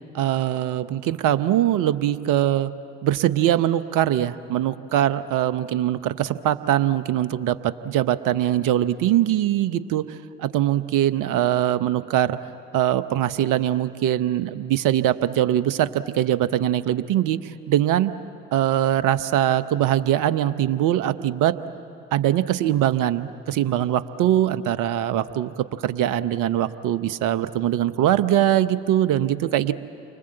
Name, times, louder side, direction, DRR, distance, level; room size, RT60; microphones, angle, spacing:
voice 1, 0.1-2.7 3.0-12.4 12.7-18.1 18.5-21.6 22.1-29.7, right 12 dB, 60° right, 13 dB, 1.0 m, -22 dB
29.5 x 25.0 x 7.9 m, 2.6 s
hypercardioid pair, 55°, 35 cm